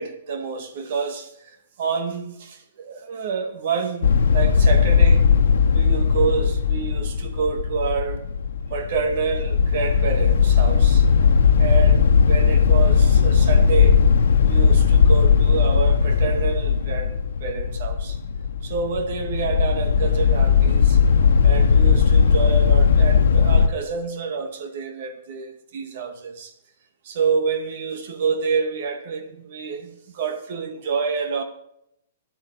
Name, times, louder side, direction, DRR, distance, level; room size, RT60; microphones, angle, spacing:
voice 1, 0.0-5.3 5.7-8.2 8.7-11.1 11.6-14.0 14.4-18.2 18.6-21.0 21.4-26.5 27.0-31.4, right 5 dB, 45° right, 2.1 m, -28 dB
sound 1, 4.0-23.7, left 6 dB, 90° left, 1.2 m, -17 dB
12.5 x 11.5 x 5.0 m
hypercardioid pair, 175°, 0 cm